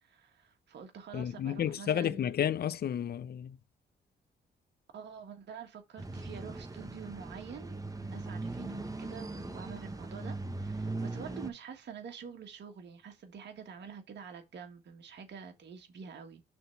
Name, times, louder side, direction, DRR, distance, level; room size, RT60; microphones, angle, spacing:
voice 1, 0.0-2.3 4.9-16.4, right 6 dB, 65° right, 1.6 m, -47 dB
voice 2, 1.1-3.6, left 9 dB, 55° left, 0.6 m, -31 dB
sound 1, 6.0-11.5, right 2 dB, 20° right, 1.1 m, -39 dB
6.0 x 3.7 x 5.7 m
supercardioid pair, 55°, 19 cm